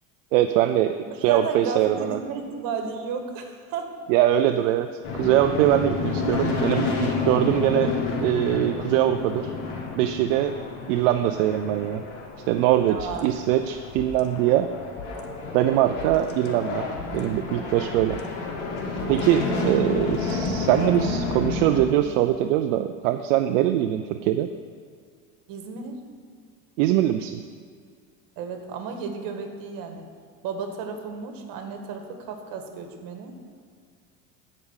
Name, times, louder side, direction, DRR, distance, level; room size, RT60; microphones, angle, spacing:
voice 1, 0.3-2.2 4.1-9.6 9.9-10.5 10.9-12.0 12.5-14.7 15.5-18.2 19.1-24.5 26.8-27.4, right 12 dB, 80° right, 8 dB, 0.5 m, -22 dB
voice 2, 1.3-3.9 12.9-13.2 15.7-15.9 19.1-19.6 25.5-26.0 28.4-30.1 30.4-33.3, right 5 dB, 60° right, 5 dB, 1.5 m, -33 dB
sound 1, 5.0-21.8, left 4 dB, 75° left, 2.3 m, -30 dB
sound 2, 13.0-21.0, left 4 dB, 35° left, 1.2 m, -43 dB
9.3 x 5.1 x 7.2 m, 2.2 s
supercardioid pair, 100°, 38 cm